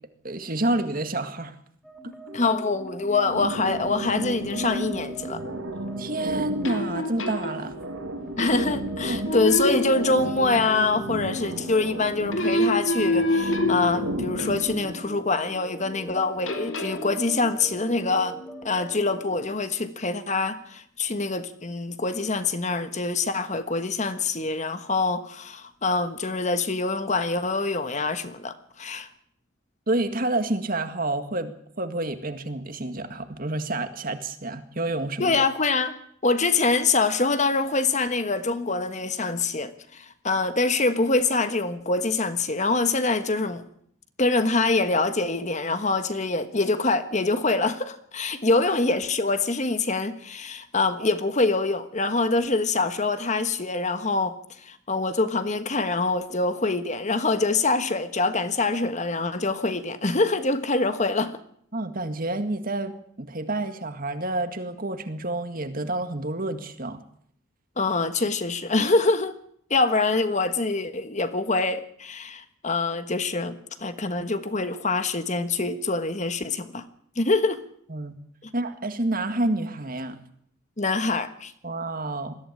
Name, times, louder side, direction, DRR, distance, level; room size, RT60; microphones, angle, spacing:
voice 1, 0.2-1.5 2.3-2.4 6.0-7.8 9.0-9.3 29.9-31.5 31.8-35.4 61.7-67.0 77.9-78.2 78.5-80.2 81.6-82.4, right 2 dB, 45° right, 2.0 m, -29 dB
sound 1, 1.8-19.5, right 1 dB, ahead, 3.4 m, -41 dB
voice 2, 2.3-5.4 8.4-18.4 18.6-29.1 35.2-35.9 36.2-43.6 44.2-54.3 54.6-61.4 67.8-69.3 69.7-76.8 77.2-77.6 78.4-78.5 80.8-81.5, left 3 dB, 35° left, 1.4 m, -25 dB
sound 2, 3.2-15.0, right 1 dB, 85° right, 2.4 m, -34 dB
sound 3, 6.7-7.9 8.4-9.0 9.3-10.6 12.3-14.8 16.5-17.1, left 1 dB, 70° left, 2.6 m, -27 dB
21.0 x 15.0 x 9.8 m
head